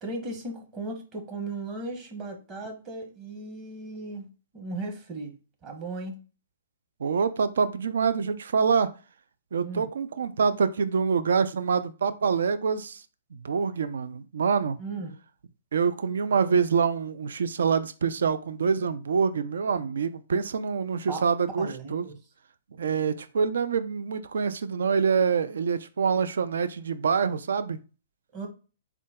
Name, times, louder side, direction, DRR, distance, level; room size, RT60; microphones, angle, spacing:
voice 1, 0.0-4.3 4.5-5.4 5.6-6.1 9.6-9.8 14.8-15.1 21.1-21.2 21.6-22.2 28.3-28.5, right 2 dB, 30° right, 1.1 m, -36 dB
voice 2, 7.0-8.9 9.5-13.0 13.3-14.8 15.7-22.1 22.8-27.8, right 6 dB, 70° right, 0.3 m, -26 dB
3.8 x 2.3 x 3.5 m
hypercardioid pair, 125°, 0 cm